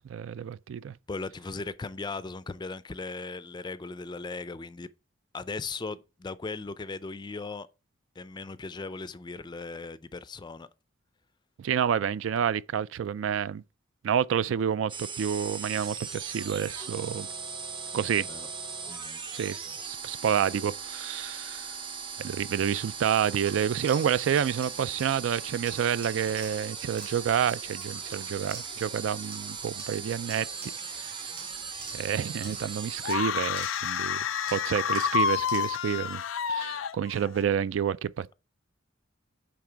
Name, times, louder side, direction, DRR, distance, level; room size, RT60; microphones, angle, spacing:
voice 1, 0.0-0.9 11.6-13.6 14.0-17.3 17.9-18.3 19.3-21.7 22.2-30.5 30.9-31.3 31.9-36.2 36.5-38.3, right 8 dB, 75° right, 0.3 m, -29 dB
voice 2, 1.1-4.9 5.3-7.7 8.2-10.7 18.1-18.5 18.9-19.2, left 3 dB, 20° left, 0.4 m, -38 dB
sound 1, 14.9-33.1, right 5 dB, 25° right, 0.6 m, -39 dB
sound 2, 23.5-29.0 29.3-31.0 31.4-34.1 34.5-36.0, right 4 dB, 50° right, 3.6 m, -48 dB
sound 3, 33.0-37.4, left 7 dB, 90° left, 0.4 m, -29 dB
8.7 x 3.5 x 4.5 m
head